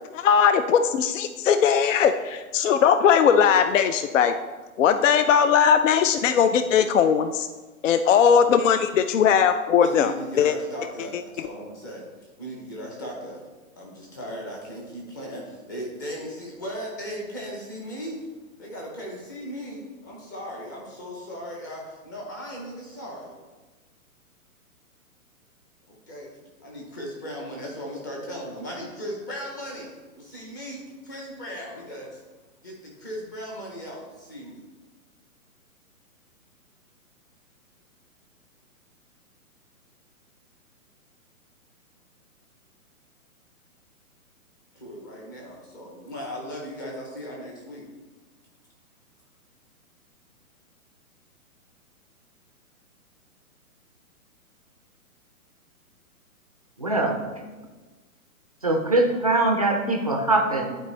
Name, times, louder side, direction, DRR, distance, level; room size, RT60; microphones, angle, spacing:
voice 1, 0.1-4.3 4.8-7.5 7.8-10.5, left 7 dB, 60° left, 10 dB, 0.5 m, -19 dB
voice 2, 9.8-12.0 12.4-13.4 13.8-18.2 18.6-23.4 25.9-26.3 26.6-29.9 30.2-32.2 32.6-34.6 44.7-47.9, equal, 15° left, -2 dB, 0.6 m, -37 dB
voice 3, 56.8-57.2 58.6-60.8, right 2 dB, 30° right, 3 dB, 0.4 m, -22 dB
11.0 x 4.5 x 3.2 m, 1.3 s
hypercardioid pair, 170°, 44 cm